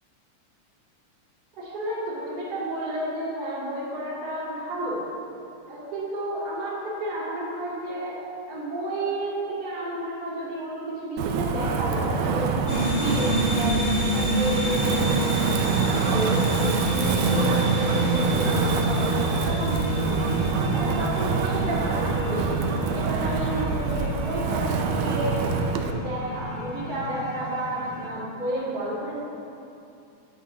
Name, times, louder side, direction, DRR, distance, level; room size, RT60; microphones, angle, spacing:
voice 1, 1.6-5.1 5.7-8.2 8.5-15.3 15.8-25.5 25.8-29.2, right 1 dB, 55° right, -11 dB, 3.0 m, -31 dB
Wind, 11.2-25.9, right 5 dB, 90° right, 2.1 m, -26 dB
sound 1, 12.7-28.1, equal, 30° left, 0.9 m, -29 dB
9.7 x 8.3 x 3.7 m, 2.6 s
omnidirectional pair, 3.5 m